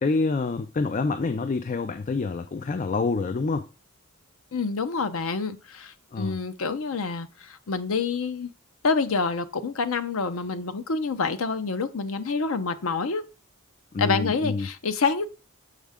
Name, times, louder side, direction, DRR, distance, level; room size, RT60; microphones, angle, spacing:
voice 1, 0.0-3.7 6.1-6.4 13.9-14.7, left 3 dB, 35° left, 0.4 m, -27 dB
voice 2, 4.5-8.5 8.8-13.2 14.0-15.2, left 4 dB, 70° left, 0.6 m, -27 dB
6.4 x 5.0 x 3.5 m
head